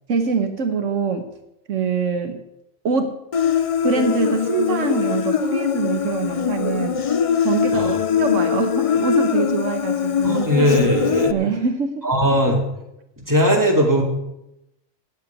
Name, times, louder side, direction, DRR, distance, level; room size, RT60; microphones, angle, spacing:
voice 1, 0.1-1.3 1.7-2.4 2.8-3.2 3.8-7.1 7.4-10.4 11.3-12.1, right 5 dB, 75° right, 6 dB, 1.4 m, -24 dB
Human voice, 3.3-11.3, left 8 dB, 55° left, 0.3 m, -22 dB
voice 2, 10.2-11.3 12.0-12.6 13.2-14.0, equal, 15° right, -1 dB, 2.8 m, -18 dB
9.5 x 8.7 x 9.5 m, 0.86 s
omnidirectional pair, 1.3 m